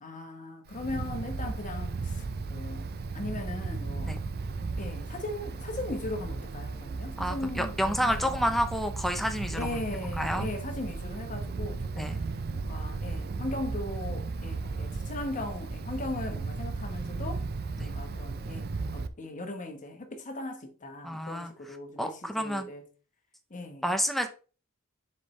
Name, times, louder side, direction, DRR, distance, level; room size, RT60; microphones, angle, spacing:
voice 1, 0.0-2.9 3.1-4.1 4.8-8.6 9.5-12.1 12.5-17.4 17.8-22.8 23.5-23.9, left 2 dB, 35° left, 1.2 m, -38 dB
Wind, 0.7-19.1, right 3 dB, 45° right, 0.5 m, -35 dB
voice 2, 7.2-9.8 10.2-10.5 12.0-12.2 17.8-17.9 21.0-21.5 22.0-22.7 23.8-24.3, equal, ahead, 0.7 m, -29 dB
6.8 x 4.4 x 3.2 m
head